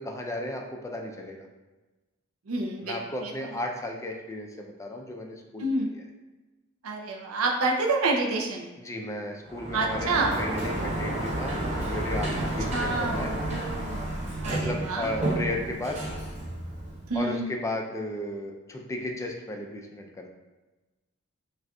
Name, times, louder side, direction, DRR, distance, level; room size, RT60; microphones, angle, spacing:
voice 1, 0.0-1.5 2.8-6.0 8.8-11.5 11.8-13.3 14.5-16.0 17.1-20.3, left 1 dB, 15° left, 1 dB, 0.4 m, -34 dB
voice 2, 2.5-3.5 5.6-5.9 6.8-8.7 9.7-10.4 12.7-15.1 17.1-17.4, right 3 dB, 75° right, 0 dB, 0.5 m, -28 dB
Sliding door, 9.5-17.2, right 1 dB, 30° right, 0.7 m, -31 dB
6.2 x 2.4 x 2.3 m, 1.2 s
head